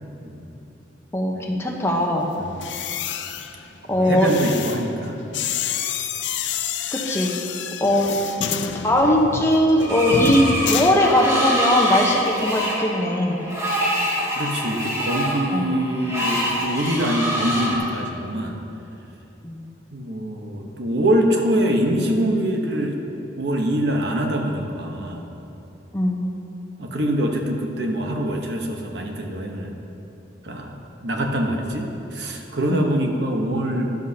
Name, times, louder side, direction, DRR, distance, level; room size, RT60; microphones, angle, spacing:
voice 1, 1.1-2.3 3.9-4.3 6.9-7.4 7.8-8.2 8.8-13.4 15.5-15.8 19.4-19.6 25.9-26.3 32.7-32.9, left 1 dB, 15° left, 0 dB, 0.9 m, -20 dB
sound 1, 2.5-11.6 11.9-12.2, left 7 dB, 80° left, 0.5 m, -29 dB
voice 2, 3.9-5.2 14.3-18.6 19.9-23.0 23.4-25.3 26.8-29.7 30.4-34.0, equal, 65° right, 2 dB, 1.1 m, -24 dB
Screech, 9.8-17.8, equal, 20° right, 2.4 m, -25 dB
13.0 x 12.0 x 2.9 m, 2.9 s
head